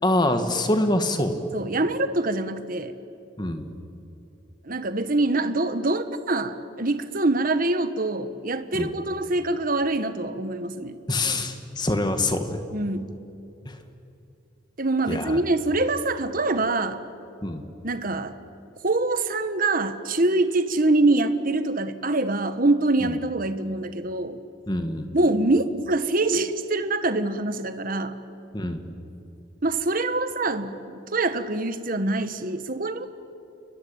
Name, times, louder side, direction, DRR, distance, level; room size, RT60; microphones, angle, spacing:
voice 1, 0.0-1.4 3.4-3.7 8.7-8.9 11.1-12.6 13.7-13.8 15.1-15.4 17.4-17.6 24.7-25.1 28.5-28.8, left 1 dB, 20° left, 7 dB, 1.9 m, -25 dB
voice 2, 1.5-2.9 4.6-11.0 12.7-13.1 14.8-17.0 17.8-18.3 18.8-24.4 25.1-28.2 29.6-33.1, right 2 dB, 45° right, 10 dB, 1.4 m, -24 dB
29.5 x 22.5 x 8.9 m, 2.7 s
head